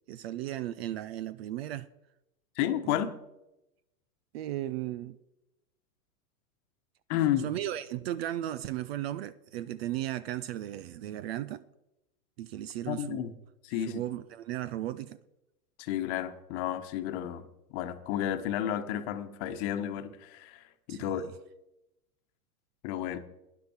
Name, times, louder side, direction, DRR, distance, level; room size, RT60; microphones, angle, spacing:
voice 1, 0.1-1.9 2.8-3.0 4.3-5.2 7.4-11.6 12.4-13.3 13.9-15.2 20.9-21.3, right 13 dB, 45° right, 0.4 m, -36 dB
voice 2, 2.6-3.1 7.1-7.5 12.9-13.3 13.6-14.0 15.8-21.2 22.8-23.2, left 11 dB, 45° left, 1.2 m, -32 dB
12.0 x 9.9 x 4.4 m
hypercardioid pair, 130°, 47 cm